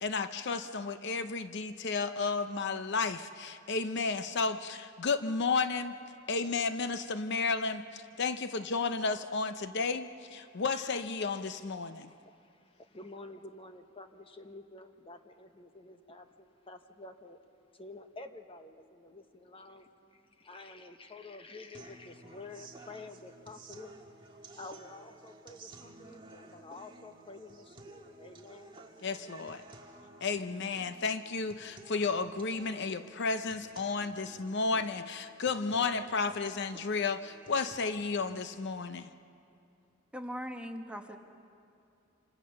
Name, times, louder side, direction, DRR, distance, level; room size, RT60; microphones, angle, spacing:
voice 1, 0.0-5.9 6.3-12.1 29.0-29.6 30.2-39.1, left 4 dB, 60° left, 10 dB, 0.7 m, -32 dB
voice 2, 11.8-17.4 17.7-24.0 24.6-28.8, left 2 dB, 30° left, 7 dB, 1.1 m, -50 dB
sound 1, 21.7-37.8, right 2 dB, 25° right, 1.7 m, -54 dB
voice 3, 40.1-41.2, equal, 5° right, 3 dB, 1.3 m, -40 dB
26.5 x 25.5 x 6.6 m, 2.6 s
head